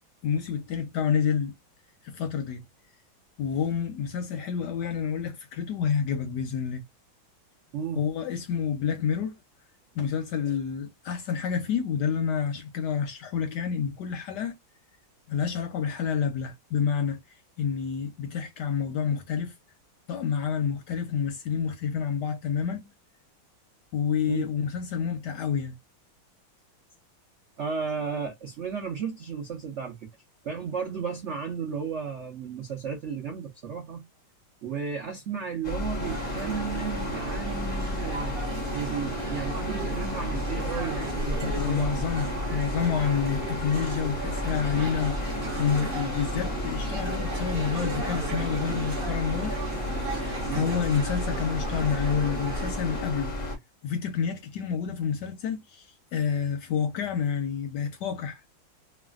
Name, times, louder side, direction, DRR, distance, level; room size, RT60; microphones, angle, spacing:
voice 1, 0.2-1.5 2.0-2.6 3.4-6.8 7.9-9.4 10.0-14.5 15.3-17.2 17.6-19.5 20.1-22.9 23.9-25.7 41.4-49.6 50.1-53.3 53.8-58.5, left 7 dB, 70° left, 1.0 m, -29 dB
voice 2, 7.7-8.0 10.5-10.6 24.3-24.4 27.6-30.0 30.4-34.0 34.6-38.4 38.7-42.5 50.5-50.7, right 6 dB, 70° right, 0.6 m, -34 dB
sound 1, 35.6-53.6, left 1 dB, 40° left, 0.6 m, -32 dB
sound 2, 36.0-53.0, right 3 dB, 45° right, 0.8 m, -36 dB
3.2 x 2.3 x 2.3 m
omnidirectional pair, 2.2 m